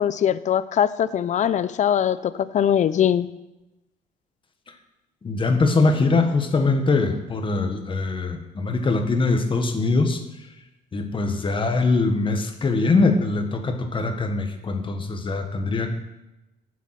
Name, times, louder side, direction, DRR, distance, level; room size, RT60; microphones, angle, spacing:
voice 1, 0.0-3.3, left 9 dB, 45° left, 15 dB, 0.6 m, -21 dB
voice 2, 5.2-10.2 10.9-15.9, left 3 dB, 30° left, 6 dB, 1.6 m, -22 dB
10.5 x 7.2 x 7.7 m, 0.97 s
cardioid pair, 110°, 17 cm